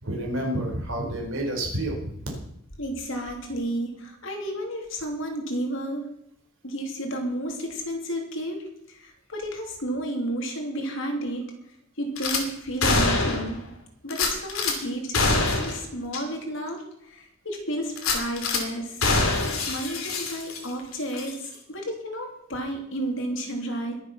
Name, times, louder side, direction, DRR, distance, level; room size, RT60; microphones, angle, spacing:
voice 1, 0.0-2.2, right 1 dB, 65° right, 0 dB, 4.4 m, -29 dB
voice 2, 2.8-6.1 6.6-11.5 12.0-13.6 14.0-19.1 19.7-24.0, right 1 dB, 60° left, 2 dB, 2.8 m, -32 dB
Gunshot gunfire / Glass, 12.2-12.4 12.8-13.6 14.1-14.8 15.1-15.8 16.1-16.2 16.7-16.8 18.0-18.6 19.0-20.8 21.1-21.3, left 3 dB, 85° left, 2.6 m, -24 dB
21.5 x 7.3 x 5.7 m, 0.75 s
head